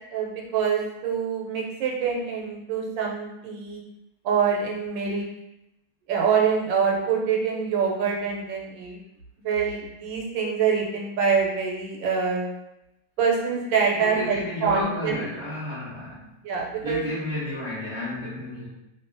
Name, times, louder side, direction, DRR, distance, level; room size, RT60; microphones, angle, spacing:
voice 1, 0.1-3.8 4.2-5.3 6.1-9.0 9.4-12.5 13.2-15.2 16.4-17.0, right 6 dB, 85° right, -1 dB, 1.4 m, -25 dB
voice 2, 13.9-16.3 16.8-18.7, left 1 dB, 35° right, -11 dB, 0.4 m, -32 dB
2.7 x 2.6 x 2.5 m, 0.89 s
omnidirectional pair, 2.0 m